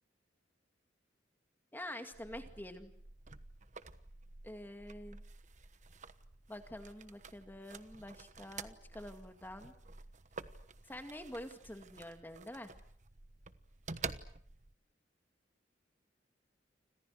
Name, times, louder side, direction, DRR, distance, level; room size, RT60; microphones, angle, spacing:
voice 1, 1.7-2.9 4.4-5.2 6.5-9.7 10.8-12.7, left 1 dB, 10° left, 6 dB, 2.1 m, -47 dB
sound 1, 2.1-14.7, right 4 dB, 40° right, 1.2 m, -50 dB
30.0 x 26.0 x 6.5 m, 0.63 s
head